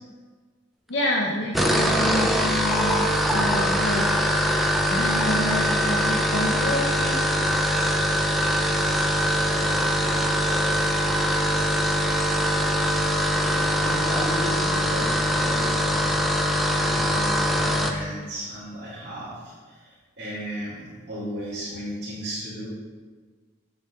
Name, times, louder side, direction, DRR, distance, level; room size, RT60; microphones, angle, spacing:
voice 1, 0.9-3.0 3.3-4.0 4.9-7.3, left 1 dB, 65° left, -3 dB, 0.7 m, -28 dB
sound 1, 1.4-18.0, equal, ahead, 0.4 m, -23 dB
voice 2, 9.4-10.4 13.4-16.1 16.4-22.7, equal, 55° right, -11 dB, 2.1 m, -35 dB
7.9 x 7.6 x 2.3 m, 1.4 s
head